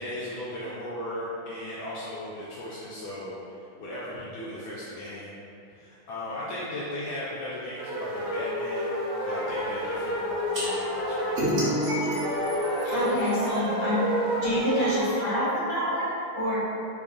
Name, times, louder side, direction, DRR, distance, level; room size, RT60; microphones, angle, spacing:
voice 1, 0.0-3.4 3.8-5.3 5.7-9.0 9.2-11.5, left 1 dB, 75° left, -8 dB, 1.3 m, -36 dB
sound 1, 7.8-15.2, equal, 70° right, 1.4 m, -29 dB
sound 2, 10.5-10.7 11.4-13.6, equal, 85° right, 0.6 m, -29 dB
voice 2, 12.8-14.0 14.3-16.5, equal, 40° left, -10 dB, 1.4 m, -27 dB
3.5 x 2.3 x 3.6 m, 2.7 s
omnidirectional pair, 2.3 m